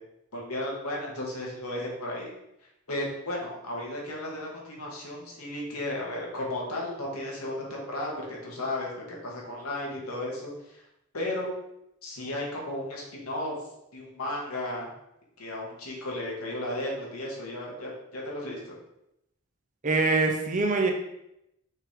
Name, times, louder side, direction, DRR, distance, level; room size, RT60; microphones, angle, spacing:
voice 1, 0.3-2.3 2.9-10.8 11.1-11.5 12.0-13.6 13.9-14.9 15.4-18.7, left 1 dB, 90° left, -3 dB, 1.9 m, -34 dB
voice 2, 19.8-20.9, right 3 dB, 35° right, 3 dB, 0.7 m, -24 dB
5.9 x 3.7 x 4.4 m, 0.83 s
head